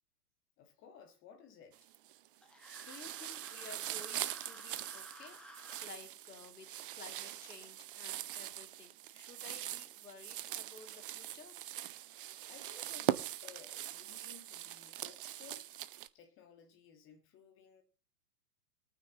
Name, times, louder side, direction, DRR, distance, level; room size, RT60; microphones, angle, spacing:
voice 1, 0.6-1.9 12.5-15.7 16.1-17.8, left 7 dB, 25° left, 1.6 m, -58 dB
sound 1, 1.7-2.3 2.6-16.1, right 13 dB, 35° right, 0.5 m, -42 dB
sound 2, 2.4-5.9, equal, ahead, 1.5 m, -54 dB
voice 2, 2.8-5.4 5.8-6.7 6.9-11.5, left 4 dB, 70° left, 2.5 m, -54 dB
22.0 x 9.2 x 2.8 m
figure-of-eight pair, 100°, 48 cm